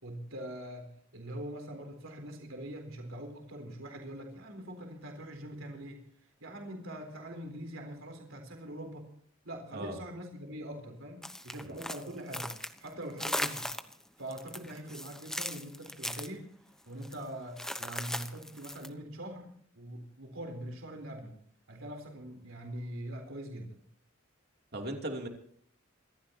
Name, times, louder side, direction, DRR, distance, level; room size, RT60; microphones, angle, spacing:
voice 1, 0.0-6.0 6.4-9.1 9.4-12.5 12.8-13.7 14.2-16.5 16.9-19.5 19.8-21.4 21.7-23.8, right 1 dB, 70° right, 3 dB, 4.0 m, -43 dB
sound 1, 11.2-12.9 13.2-14.0 14.3-16.3 17.0-17.2 17.6-18.9, left 1 dB, 5° left, 1.0 m, -38 dB
voice 2, 24.7-25.3, right 1 dB, 50° right, 2 dB, 3.0 m, -37 dB
27.0 x 14.0 x 2.9 m, 0.63 s
head